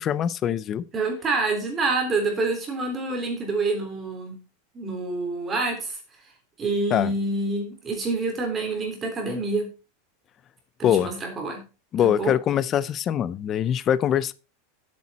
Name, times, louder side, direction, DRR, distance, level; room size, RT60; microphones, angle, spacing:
voice 1, 0.0-0.8 6.9-7.1 10.8-11.1 11.9-14.3, left 10 dB, 20° left, 0.5 m, -23 dB
voice 2, 0.9-4.4 4.7-6.0 6.6-9.7 10.8-11.6 12.0-12.3, right 3 dB, 15° right, 3.5 m, -27 dB
10.5 x 8.5 x 4.2 m
supercardioid pair, 170°, 0 cm